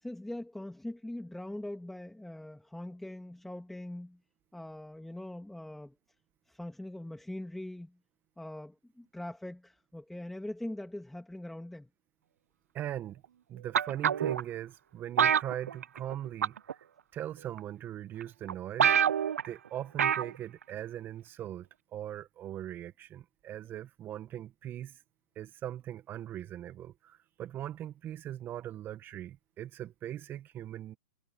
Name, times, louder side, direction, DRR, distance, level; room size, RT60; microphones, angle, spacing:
voice 1, 0.0-4.2 4.5-5.9 6.5-8.0 8.4-11.9, left 1 dB, 5° left, 2.7 m, -42 dB
voice 2, 12.7-13.2 13.5-16.8 17.1-18.9 19.4-25.0 25.3-31.0, right 11 dB, 25° right, 1.7 m, -40 dB
sound 1, 13.7-14.4 15.2-16.1 16.4-16.7 17.6-17.7 18.2-18.3 18.5-18.6 18.8-19.5 20.0-20.3 20.6-20.7, right 8 dB, 75° right, 0.5 m, -26 dB
hypercardioid pair, 120°, 8 cm